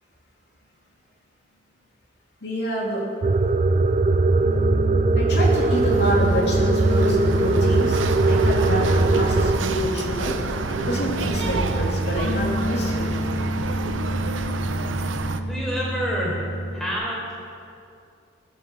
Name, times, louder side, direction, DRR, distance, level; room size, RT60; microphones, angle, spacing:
voice 1, 2.4-3.0 5.1-8.0 8.3-10.3 10.7-13.1, equal, 60° left, -4 dB, 3.1 m, -27 dB
sound 1, 3.2-9.6, right 3 dB, 35° right, 0.4 m, -20 dB
Piano, 4.4-16.9, left 1 dB, 75° left, 2.5 m, -30 dB
sound 2, 5.3-15.4, right 3 dB, 80° right, 0.8 m, -30 dB
voice 2, 15.4-16.4 16.7-17.3, equal, 5° left, -5 dB, 4.3 m, -28 dB
18.5 x 7.6 x 7.6 m, 2.5 s
head